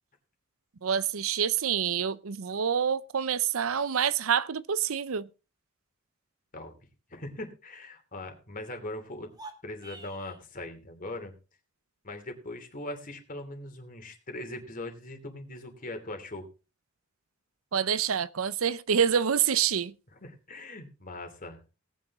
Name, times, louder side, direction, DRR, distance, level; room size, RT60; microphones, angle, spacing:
voice 1, 0.8-5.3 17.7-19.9, right 8 dB, 85° right, 0.6 m, -27 dB
voice 2, 7.1-9.3 9.6-11.3 12.0-16.5 20.1-21.7, left 1 dB, 40° left, 2.9 m, -40 dB
sound 1, 9.2-10.4, right 2 dB, 20° right, 1.8 m, -47 dB
18.5 x 9.2 x 3.6 m
head